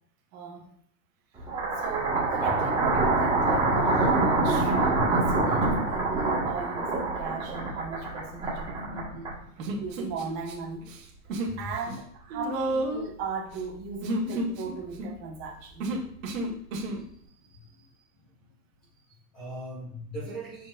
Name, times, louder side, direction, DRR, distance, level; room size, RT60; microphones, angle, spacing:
voice 1, 0.3-0.7 1.8-9.3 9.8-10.9 11.6-15.9, right 5 dB, 40° right, -1 dB, 1.7 m, -37 dB
sound 1, 1.4-9.6, right 2 dB, 10° right, 1.6 m, -25 dB
Human voice, 9.6-10.5 10.8-11.6 11.8-17.0, right 1 dB, 55° right, 1.8 m, -32 dB
voice 2, 17.1-17.9 19.1-20.7, equal, 5° left, -10 dB, 0.3 m, -41 dB
6.9 x 5.3 x 2.6 m, 0.62 s
hypercardioid pair, 150°, 47 cm